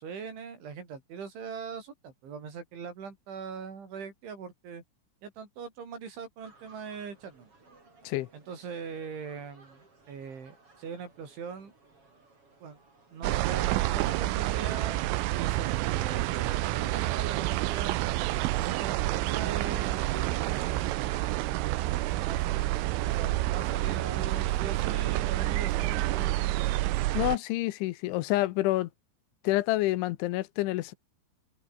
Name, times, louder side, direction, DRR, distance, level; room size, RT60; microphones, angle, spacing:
voice 1, 0.0-4.8 5.2-7.5 8.3-11.7 12.6-12.8 13.1-18.0 18.5-20.9 22.2-22.7 23.0-26.7, right 6 dB, 70° right, 7.8 m, -41 dB
sound 1, 6.4-24.7, right 3 dB, 30° right, 7.1 m, -60 dB
sound 2, 13.2-27.4, right 17 dB, 85° right, 3.7 m, -28 dB
voice 2, 27.1-28.9 29.4-30.9, left 17 dB, 85° left, 3.2 m, -28 dB
open air
omnidirectional pair, 5.6 m